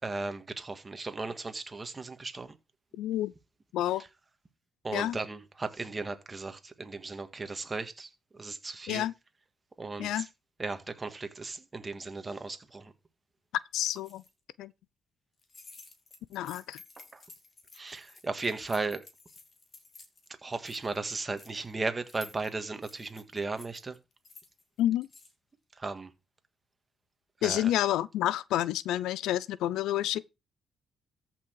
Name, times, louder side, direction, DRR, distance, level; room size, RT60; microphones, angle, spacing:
voice 1, 0.0-2.5 4.8-9.1 9.8-10.3 10.6-12.9 17.0-17.2 17.7-19.0 20.4-24.0 25.8-26.1 27.4-27.7, right 3 dB, 25° right, 2.0 m, -36 dB
voice 2, 3.0-3.3 3.7-4.0 4.9-5.2 8.9-9.1 10.0-10.3 13.7-14.2 14.6-14.7 16.3-16.8 24.8-25.1 27.4-30.2, left 13 dB, 85° left, 0.5 m, -29 dB
sound 1, 13.8-14.3 15.4-20.3 20.5-21.7 22.1-25.3, left 4 dB, 40° left, 3.2 m, -53 dB
14.0 x 6.2 x 4.7 m
cardioid pair, 90°, 0 cm